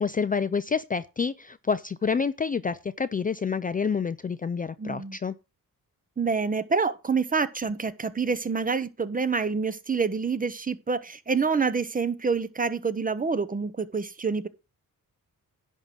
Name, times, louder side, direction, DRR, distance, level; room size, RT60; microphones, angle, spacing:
voice 1, 0.0-5.3, left 5 dB, 25° left, 0.4 m, -28 dB
voice 2, 4.8-5.2 6.2-14.5, right 5 dB, 25° right, 0.7 m, -27 dB
10.5 x 3.7 x 7.5 m
cardioid pair, 105°, 34 cm